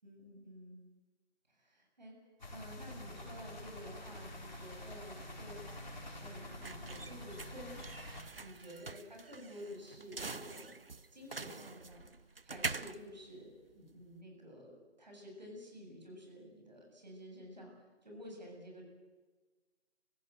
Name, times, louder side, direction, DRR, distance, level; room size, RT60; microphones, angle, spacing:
voice 1, 0.0-0.8 1.5-2.2 2.5-7.8 8.3-10.8 11.1-12.1 12.4-18.8, equal, 40° right, 0 dB, 7.8 m, -51 dB
sound 1, 2.4-8.2, left 1 dB, 40° left, 4.6 m, -47 dB
sound 2, 5.6-14.2, right 4 dB, 55° right, 0.9 m, -45 dB
30.0 x 16.5 x 7.9 m, 1.3 s
figure-of-eight pair, 180°, 34 cm